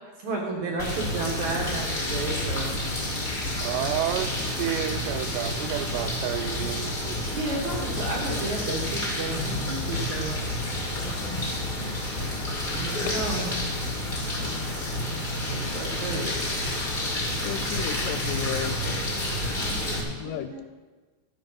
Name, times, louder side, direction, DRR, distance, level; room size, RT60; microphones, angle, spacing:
voice 1, 0.2-2.8 4.1-4.3 7.3-10.4 12.6-13.6 15.3-16.3 19.6-20.6, right 3 dB, 60° right, 2.2 m, -33 dB
sound 1, 0.8-20.0, left 1 dB, 45° left, 0.6 m, -29 dB
voice 2, 3.6-7.4, right 13 dB, 85° right, 2.7 m, -31 dB
voice 3, 17.4-19.0 19.5-20.6, left 11 dB, 85° left, 2.8 m, -35 dB
13.5 x 7.6 x 5.7 m
omnidirectional pair, 5.0 m